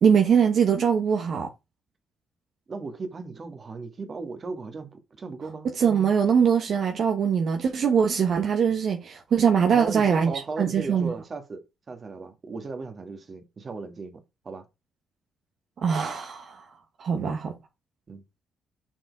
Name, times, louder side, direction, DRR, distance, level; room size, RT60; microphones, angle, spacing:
voice 1, 0.0-1.5 5.8-10.3 10.6-11.1 15.8-16.6 17.0-17.5, right 7 dB, 60° right, 1.1 m, -22 dB
voice 2, 2.7-5.7 9.7-11.6 11.9-14.2 14.4-14.6 18.1-18.2, right 4 dB, 40° right, 1.6 m, -36 dB
6.2 x 4.4 x 4.6 m
cardioid pair, 90°, 0 cm